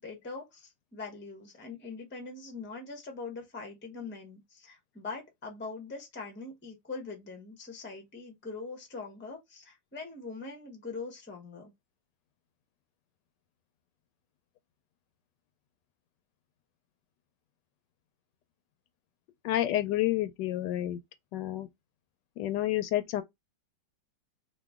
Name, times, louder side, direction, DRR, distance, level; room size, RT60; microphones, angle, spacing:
voice 1, 0.0-11.7, left 4 dB, 10° left, 0.6 m, -42 dB
voice 2, 19.4-21.0 21.3-21.7 22.4-23.2, left 14 dB, 75° left, 1.2 m, -29 dB
2.9 x 2.5 x 3.4 m
omnidirectional pair, 2.0 m